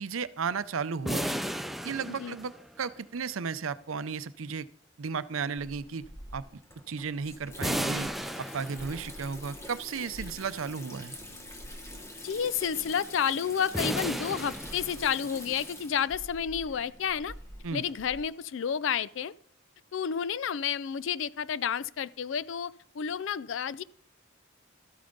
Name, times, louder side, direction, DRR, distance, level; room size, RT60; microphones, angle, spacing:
voice 1, 0.0-1.4 1.8-4.7 5.0-6.0 6.3-6.4 6.9-8.1 8.4-11.2 17.6-17.8, right 5 dB, 85° right, 0.6 m, -34 dB
sound 1, 1.1-2.9 7.6-9.3 13.7-15.4, equal, ahead, 0.4 m, -34 dB
voice 2, 2.1-2.4 12.2-17.4 17.7-19.3 19.9-23.8, left 7 dB, 65° left, 0.4 m, -30 dB
Water tap faucet / Sink (filling or washing), 5.6-18.2, left 1 dB, 15° left, 1.1 m, -45 dB
13.0 x 8.7 x 3.8 m
head